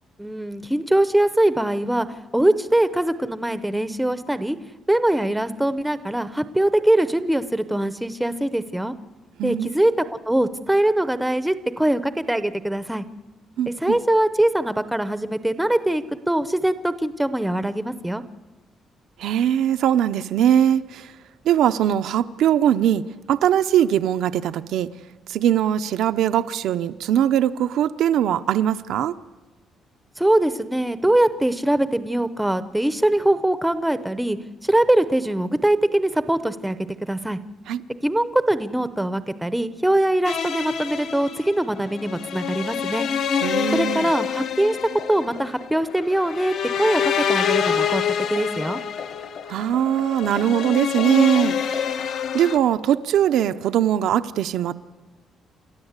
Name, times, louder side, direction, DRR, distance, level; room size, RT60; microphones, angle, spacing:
voice 1, 0.2-2.1 2.3-4.6 4.9-8.9 9.4-9.9 10.3-13.0 13.7-18.2 30.2-34.4 34.6-37.4 38.0-43.1 43.7-44.8 45.1-48.0 48.3-48.8, right 1 dB, 5° right, 12 dB, 0.7 m, -22 dB
voice 2, 13.6-14.0 19.2-21.1 21.4-24.9 25.3-29.1 37.7-37.8 43.4-44.1 49.5-51.9 52.3-54.7, right 10 dB, 75° right, 8 dB, 0.6 m, -21 dB
sound 1, 40.2-52.6, left 7 dB, 55° left, 0.9 m, -26 dB
29.5 x 13.0 x 8.1 m, 1.2 s
cardioid pair, 170°, 0 cm